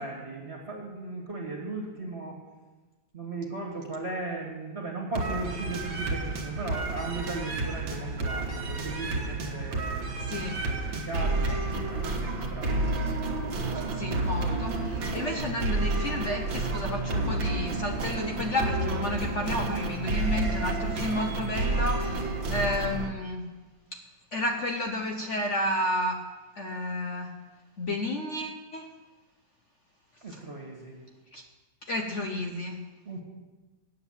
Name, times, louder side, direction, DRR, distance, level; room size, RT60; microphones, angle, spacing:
voice 1, 0.0-2.4 3.1-10.0 10.4-12.9 30.2-31.0 33.0-33.2, right 2 dB, 35° right, -2 dB, 1.8 m, -37 dB
sound 1, 5.1-23.1, right 2 dB, 75° right, 2.0 m, -30 dB
voice 2, 10.3-10.6 13.7-23.6 23.9-24.0 24.3-26.3 26.6-27.4 27.8-28.9 30.3-30.4 31.3-31.4 31.9-32.9, left 1 dB, 60° left, 3 dB, 0.8 m, -31 dB
9.1 x 7.4 x 7.2 m, 1.2 s
omnidirectional pair, 2.1 m